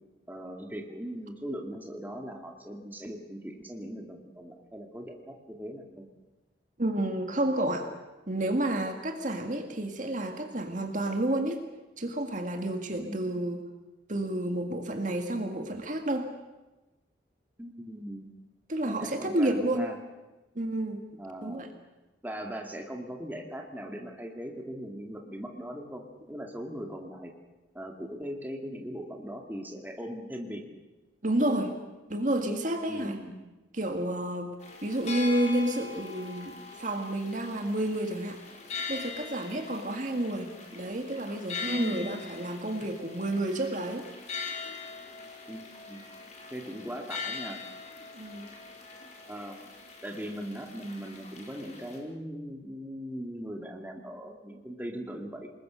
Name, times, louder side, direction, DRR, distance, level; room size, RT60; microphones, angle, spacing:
voice 1, 0.3-6.0 12.9-13.3 17.6-18.3 18.8-20.0 21.2-21.6 22.2-27.3 27.7-30.6 32.9-33.3 41.6-42.1 45.5-46.0 46.5-47.6 49.3-49.5 50.0-55.5, equal, 10° right, 2 dB, 2.5 m, -39 dB
voice 2, 6.8-7.9 8.3-11.6 12.0-13.6 14.1-16.3 18.7-19.9 20.6-21.7 31.2-31.8 32.1-33.2 33.7-34.5 34.8-38.4 38.9-44.1 48.1-48.5, right 1 dB, 45° right, 5 dB, 2.0 m, -30 dB
sound 1, 34.6-52.0, left 4 dB, 40° left, 4.5 m, -42 dB
27.5 x 21.0 x 6.5 m, 1.1 s
head